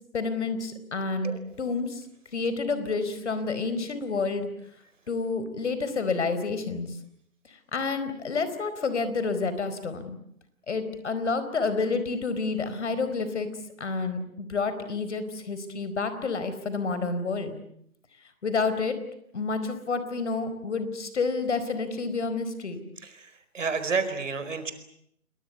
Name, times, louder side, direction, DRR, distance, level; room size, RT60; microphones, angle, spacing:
voice 1, 0.1-2.0 2.3-4.5 5.1-7.0 7.7-10.2 10.7-13.5 13.8-17.6 18.4-19.0 19.3-22.8, left 4 dB, 50° left, 11 dB, 4.5 m, -29 dB
voice 2, 23.0-24.7, right 5 dB, 55° right, 10 dB, 4.7 m, -30 dB
29.0 x 21.0 x 8.4 m, 0.72 s
figure-of-eight pair, 155°, 43 cm